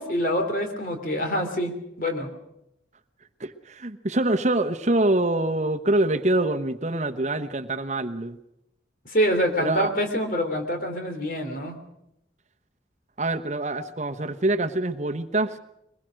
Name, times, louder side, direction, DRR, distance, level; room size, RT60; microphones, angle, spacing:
voice 1, 0.0-1.7 2.0-2.3 9.0-11.8, equal, 50° left, 5 dB, 3.2 m, -26 dB
voice 2, 3.4-8.4 9.6-9.9 13.2-15.6, right 2 dB, 40° right, 8 dB, 1.0 m, -25 dB
22.5 x 21.0 x 6.4 m, 0.82 s
head